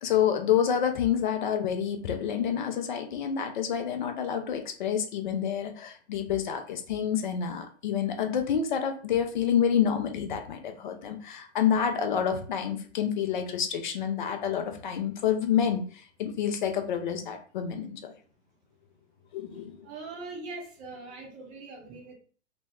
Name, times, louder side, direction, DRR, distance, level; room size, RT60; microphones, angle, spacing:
voice 1, 0.0-18.1 19.3-19.9, left 8 dB, 40° left, 5 dB, 0.5 m, -28 dB
voice 2, 19.8-22.1, right 3 dB, 20° right, 0 dB, 0.7 m, -41 dB
3.0 x 2.0 x 3.3 m, 0.42 s
figure-of-eight pair, 110°, 37 cm